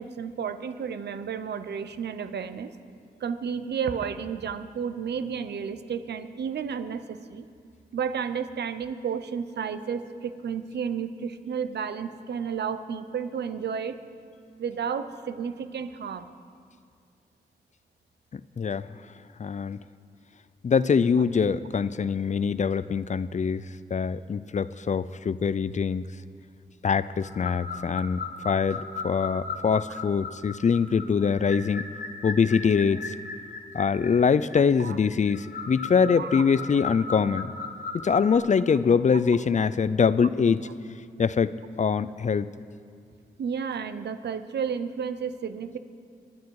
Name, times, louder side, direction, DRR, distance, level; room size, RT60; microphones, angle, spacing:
voice 1, 0.0-2.7 3.2-7.4 7.9-14.0 14.6-16.3 29.9-30.0 34.8-35.0 36.2-36.3 43.4-45.8, right 7 dB, 75° right, 11 dB, 0.8 m, -32 dB
voice 2, 18.3-18.9 19.4-19.8 20.6-26.0 26.8-31.8 32.2-33.2 33.7-37.5 37.9-40.7 41.2-42.5, left 6 dB, 45° left, 16 dB, 0.5 m, -24 dB
sound 1, 27.2-38.4, left 4 dB, 60° left, 1.5 m, -37 dB
22.5 x 9.2 x 4.8 m, 2.2 s
cardioid pair, 55°, 18 cm